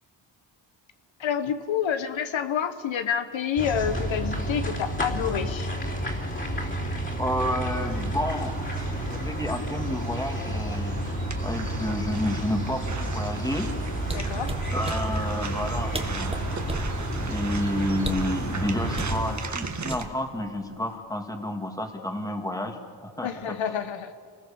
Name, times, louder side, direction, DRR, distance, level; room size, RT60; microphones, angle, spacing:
voice 1, 1.2-5.7 14.1-14.5 23.2-24.1, left 8 dB, 80° left, 9 dB, 1.4 m, -28 dB
sound 1, 3.6-19.3, right 1 dB, 25° left, 3.7 m, -31 dB
voice 2, 7.2-8.5 9.1-11.0 11.4-13.7 14.7-16.3 17.2-23.8, left 1 dB, 10° left, 4 dB, 2.4 m, -30 dB
sound 2, 7.8-20.0, right 4 dB, 40° right, 1.8 m, -38 dB
sound 3, 14.0-15.0 15.7-15.8 15.9-16.9 18.0-18.3 18.9-19.2 19.9-20.4 20.7-21.0, right 2 dB, 10° right, 1.6 m, -33 dB
28.0 x 20.5 x 7.1 m, 2.1 s
wide cardioid pair, 125°, 46 cm